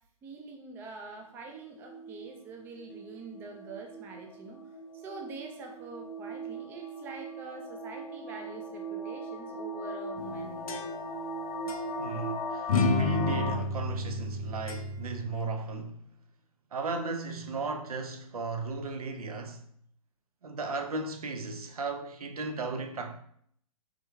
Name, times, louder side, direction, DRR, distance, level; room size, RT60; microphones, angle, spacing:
voice 1, 0.2-4.6 4.9-10.9, right 3 dB, 10° right, 0.3 m, -45 dB
sound 1, 1.6-13.6, right 1 dB, 30° left, 0.7 m, -38 dB
sound 2, 10.2-11.3 11.7-11.8 12.7-15.2, left 3 dB, 70° left, 0.4 m, -31 dB
voice 2, 12.0-16.0 16.7-19.6 20.4-23.2, right 3 dB, 80° right, 0.5 m, -36 dB
3.6 x 2.3 x 3.0 m
figure-of-eight pair, 120°, 19 cm